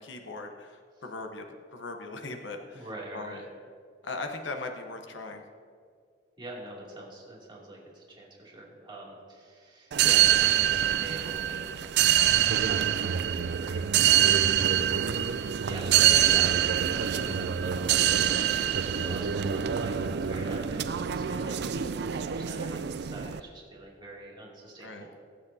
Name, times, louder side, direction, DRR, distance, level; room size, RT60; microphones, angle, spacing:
voice 1, 0.0-2.9 3.1-3.4 4.0-5.4 12.0-12.4 20.3-20.6 24.8-25.1, left 3 dB, 85° left, 4 dB, 0.9 m, -39 dB
voice 2, 2.7-3.4 6.4-11.6 12.2-14.6 15.7-25.1, right 1 dB, 25° right, -5 dB, 2.6 m, -43 dB
sound 1, 9.9-23.4, right 10 dB, 65° right, 0.4 m, -25 dB
22.5 x 7.9 x 2.8 m, 2.2 s
head